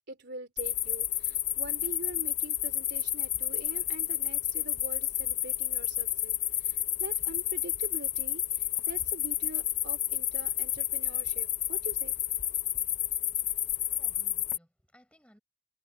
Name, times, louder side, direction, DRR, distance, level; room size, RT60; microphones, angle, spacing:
voice 1, 0.1-12.1, right 2 dB, 50° right, 3.5 m, -44 dB
sound 1, 0.6-14.6, left 12 dB, 35° left, 0.8 m, -31 dB
voice 2, 13.8-15.4, equal, 5° left, 6.3 m, -61 dB
head